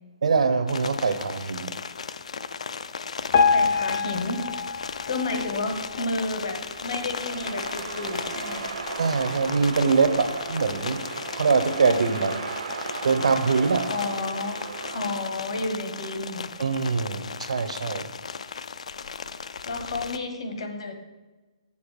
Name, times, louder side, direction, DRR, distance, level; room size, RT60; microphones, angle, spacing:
voice 1, 0.2-1.7 9.0-11.0 11.3-13.9 16.6-18.1, right 5 dB, 90° right, 0.9 m, -24 dB
sound 1, 0.7-20.2, left 6 dB, 80° left, 0.4 m, -36 dB
Piano, 3.3-6.4 6.9-7.1 7.4-7.5 8.2-8.3 8.9-9.0, left 5 dB, 25° left, 0.6 m, -25 dB
voice 2, 3.5-4.5 5.1-8.8 13.9-14.7 14.9-16.5 19.6-21.0, left 2 dB, 60° left, 1.2 m, -31 dB
sound 2, 6.1-15.8, right 6 dB, 65° right, 0.4 m, -37 dB
7.1 x 6.6 x 4.9 m
hypercardioid pair, 175°, 3 cm